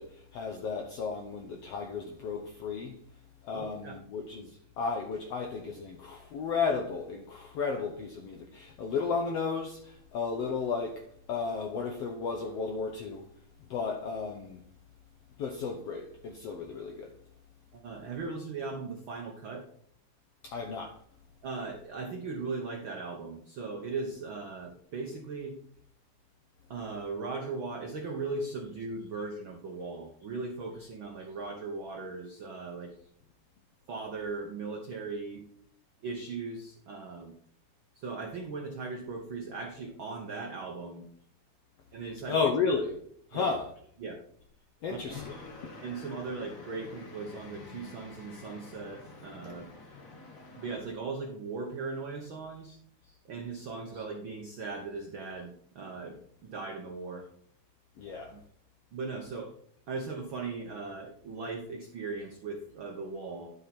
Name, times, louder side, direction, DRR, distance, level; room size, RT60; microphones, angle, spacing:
voice 1, 0.0-3.0 3.4-13.3 13.7-14.6 15.4-17.1 20.4-21.0 42.3-43.0 43.3-43.7 44.8-45.4 58.0-58.3, left 5 dB, 75° left, 1.4 m, -33 dB
voice 2, 3.5-4.0 17.7-19.6 21.4-25.6 26.7-32.9 33.9-35.4 36.0-37.3 37.9-41.1 41.9-42.4 43.3-43.5 44.0-44.2 44.9-45.3 45.8-49.7 50.5-52.8 53.2-57.3 58.1-58.4 58.9-59.5 59.9-63.5, right 4 dB, 80° right, 1.1 m, -38 dB
sound 1, 45.1-50.8, left 3 dB, 50° left, 1.0 m, -48 dB
11.5 x 5.5 x 4.2 m
omnidirectional pair, 3.8 m